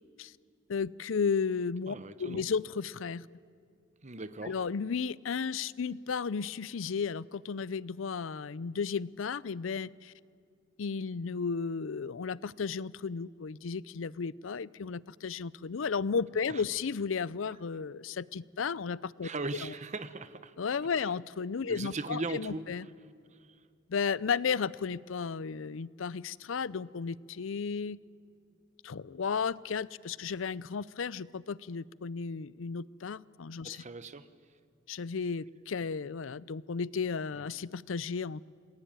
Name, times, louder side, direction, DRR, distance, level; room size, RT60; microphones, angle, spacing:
voice 1, 0.7-3.3 4.4-10.1 10.8-19.3 19.6-19.7 20.6-22.9 23.9-28.0 28.8-33.8 34.9-38.4, left 5 dB, 80° left, 0.5 m, -34 dB
voice 2, 1.9-2.4 4.0-4.6 16.5-16.6 19.2-20.5 21.0-21.1 21.7-22.7 33.6-34.3 37.4-37.5, right 3 dB, 35° right, 1.1 m, -39 dB
28.0 x 20.0 x 9.0 m
head